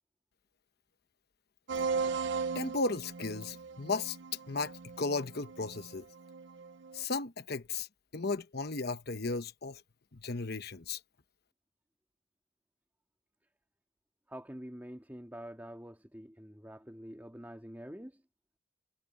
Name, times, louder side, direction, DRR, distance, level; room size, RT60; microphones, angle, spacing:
sound 1, 1.7-7.0, right 5 dB, 55° right, 0.6 m, -38 dB
voice 1, 2.5-4.2 4.5-6.1 6.9-7.9 8.1-9.8 10.1-11.0, left 3 dB, 50° left, 1.1 m, -35 dB
voice 2, 14.3-18.2, equal, 10° right, 2.2 m, -46 dB
head